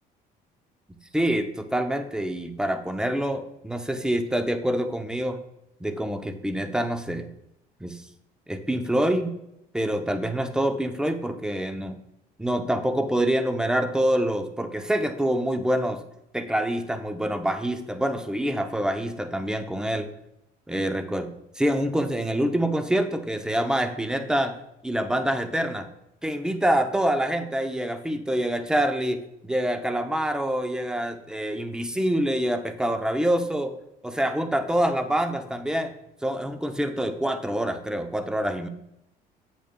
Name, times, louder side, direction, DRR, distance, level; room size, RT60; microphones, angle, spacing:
voice 1, 1.1-5.4 5.8-7.3 7.8-8.0 8.5-9.3 9.7-12.0 12.4-16.0 16.3-20.1 20.7-21.3 21.6-24.6 24.8-25.9 26.2-33.7 34.0-35.9 36.2-38.7, right 1 dB, 5° right, 7 dB, 0.5 m, -26 dB
8.2 x 6.5 x 2.2 m, 0.84 s
cardioid pair, 110°, 17 cm